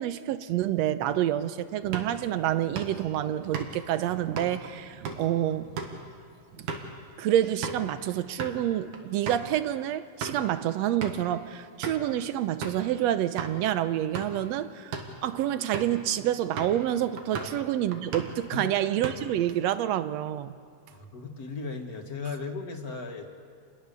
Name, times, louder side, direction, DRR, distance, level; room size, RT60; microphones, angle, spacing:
voice 1, 0.0-5.7 7.2-15.0 15.2-20.5, right 12 dB, 75° right, 1.8 m, -28 dB
sound 1, 1.8-7.9 8.2-8.6 8.9-9.0 9.3-9.5 10.0-10.5 11.0-11.3 11.8-12.1 12.6-12.9 13.4-13.5 14.0-14.4 14.8-15.2 15.7-16.0 16.6-16.9 17.2-17.6 17.9-18.4 18.8-19.4, right 5 dB, 90° right, 3.3 m, -37 dB
voice 2, 17.3-17.6 18.5-18.7 20.9-23.2, left 4 dB, 35° left, 2.0 m, -37 dB
29.0 x 20.5 x 6.9 m
omnidirectional pair, 3.3 m